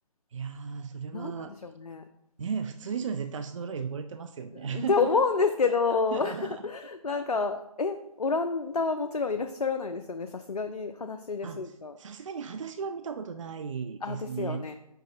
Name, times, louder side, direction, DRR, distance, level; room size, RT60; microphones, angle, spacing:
voice 1, 0.3-1.6 2.4-5.2 5.9-6.6 7.1-7.4 11.4-14.6, right 6 dB, 55° right, 9 dB, 0.4 m, -36 dB
voice 2, 1.6-2.0 4.7-11.9 14.0-14.7, left 4 dB, 85° left, 6 dB, 0.5 m, -29 dB
5.4 x 5.0 x 3.8 m, 0.82 s
figure-of-eight pair, 140°, 19 cm